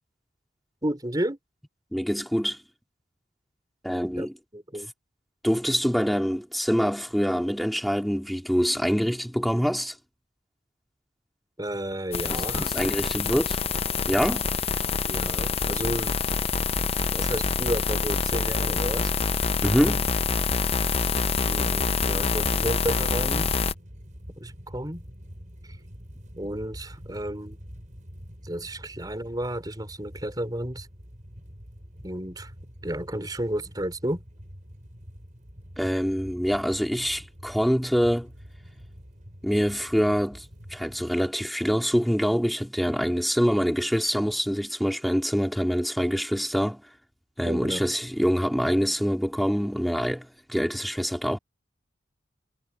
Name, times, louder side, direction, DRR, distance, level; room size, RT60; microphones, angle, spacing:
voice 1, 0.8-1.4 4.2-4.3 4.5-4.9 11.6-12.7 15.0-16.2 17.1-19.1 21.1-23.6 24.4-25.0 25.6-25.8 26.4-27.6 28.4-30.9 32.0-32.5 32.8-34.2 47.4-47.8, right 1 dB, 20° right, 4.8 m, -32 dB
voice 2, 1.9-2.6 3.8-4.3 5.4-10.0 12.3-13.6 14.1-14.5 19.6-20.1 35.8-38.3 39.4-40.4 40.7-46.8 47.4-51.4, equal, ahead, 4.4 m, -25 dB
sound 1, 12.1-23.7, left 4 dB, 35° left, 0.8 m, -26 dB
sound 2, 23.2-41.1, equal, 45° right, 6.8 m, -46 dB
head